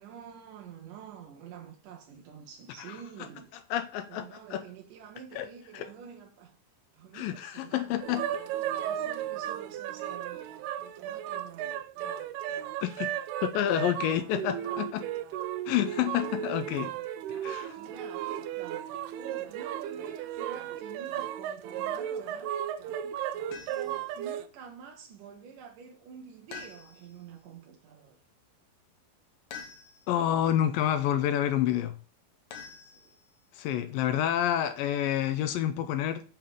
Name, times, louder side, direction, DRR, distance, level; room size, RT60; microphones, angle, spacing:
voice 1, 0.0-3.5 4.1-6.6 6.9-8.0 8.5-12.8 14.3-15.1 16.4-17.1 17.8-22.6 23.7-28.2 32.6-33.2, right 7 dB, 65° right, 2.4 m, -49 dB
voice 2, 3.7-4.6 5.4-5.5 5.7-5.9 7.1-8.3 12.8-13.1 13.4-15.0 15.7-16.9 17.3-17.8 30.1-32.0 33.6-36.2, left 11 dB, 80° left, 2.2 m, -28 dB
sound 1, 8.0-24.5, right 11 dB, 85° right, 2.6 m, -35 dB
sound 2, 23.5-24.0 26.5-27.2 29.5-30.2 32.5-33.4, left 6 dB, 65° left, 2.3 m, -46 dB
7.5 x 3.9 x 6.7 m
omnidirectional pair, 4.5 m